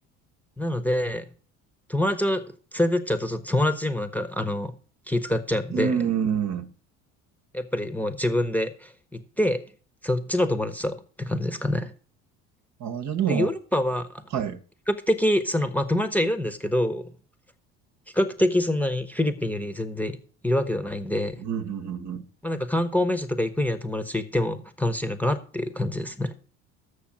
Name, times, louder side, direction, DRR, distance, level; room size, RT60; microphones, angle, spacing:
voice 1, 0.6-1.3 1.9-2.4 2.7-4.7 5.1-5.9 7.5-9.6 10.0-11.9 13.3-14.2 14.9-17.1 18.1-20.2 20.4-21.4 22.4-26.3, left 1 dB, 5° left, 1.0 m, -26 dB
voice 2, 5.7-6.7 12.8-13.5 14.3-14.6 21.4-22.2, right 8 dB, 50° right, 1.1 m, -27 dB
6.7 x 6.4 x 7.4 m
hypercardioid pair, 75°, 35 cm